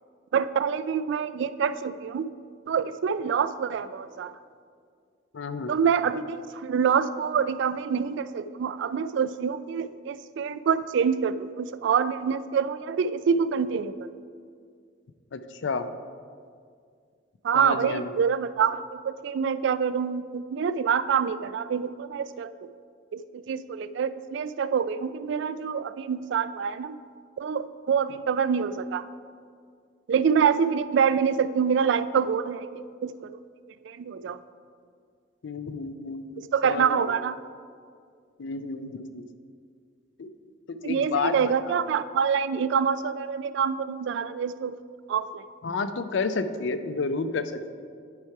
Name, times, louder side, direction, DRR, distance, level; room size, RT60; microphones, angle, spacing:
voice 1, 0.3-2.3 2.7-4.3 5.7-14.1 17.4-22.5 23.1-27.0 27.4-29.1 30.1-32.7 33.0-33.3 33.8-34.4 36.4-37.4 40.8-44.8 45.1-45.4, right 7 dB, 65° right, 15 dB, 0.3 m, -26 dB
voice 2, 5.3-5.8 15.3-15.9 17.5-18.2 35.4-37.1 38.4-39.3 40.2-40.3 40.7-41.4 41.7-41.8 45.6-47.8, left 4 dB, 65° left, 10 dB, 0.5 m, -31 dB
10.5 x 4.7 x 4.7 m, 2.2 s
head